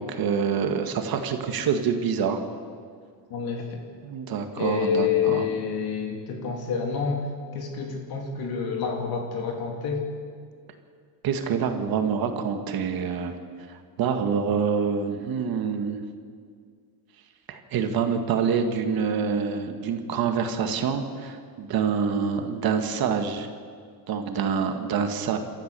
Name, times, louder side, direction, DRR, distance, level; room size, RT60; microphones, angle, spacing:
voice 1, 0.0-2.4 4.0-5.5 11.2-13.4 13.7-16.0 17.5-23.5 24.1-25.4, right 6 dB, 50° right, 6 dB, 1.8 m, -26 dB
voice 2, 3.3-3.8 4.6-7.3 7.5-10.0, left 7 dB, 55° left, 2 dB, 2.8 m, -28 dB
28.0 x 13.5 x 6.9 m, 2.1 s
cardioid pair, 160°, 45 cm